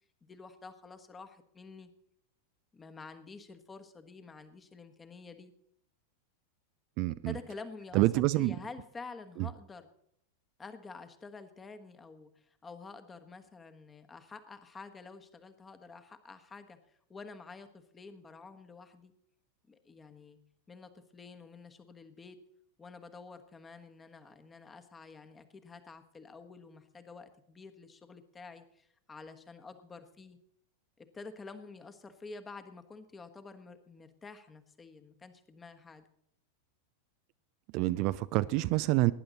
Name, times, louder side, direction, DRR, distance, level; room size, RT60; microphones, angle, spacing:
voice 1, 0.2-1.9 2.7-5.5 7.1-9.9 10.6-16.8 17.1-19.1 19.7-20.4 20.7-22.4 22.8-30.4 31.0-36.1, left 4 dB, 15° left, 9 dB, 1.4 m, -49 dB
voice 2, 7.0-7.3 7.9-8.5 37.7-39.1, right 18 dB, 45° right, 15 dB, 0.4 m, -27 dB
18.5 x 10.0 x 4.1 m, 0.71 s
figure-of-eight pair, 90°, 0 cm